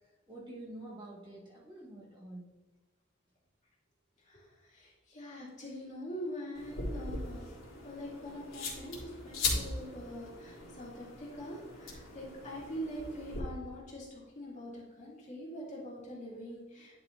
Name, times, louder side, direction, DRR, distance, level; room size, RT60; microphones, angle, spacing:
voice 1, 0.3-2.5, right 1 dB, 25° right, -6 dB, 1.9 m, -47 dB
voice 2, 4.3-7.5 7.8-17.0, equal, 35° left, -4 dB, 2.3 m, -44 dB
sound 1, 6.6-13.4, left 3 dB, 85° left, 2.5 m, -39 dB
10.5 x 5.4 x 3.0 m, 1.3 s
head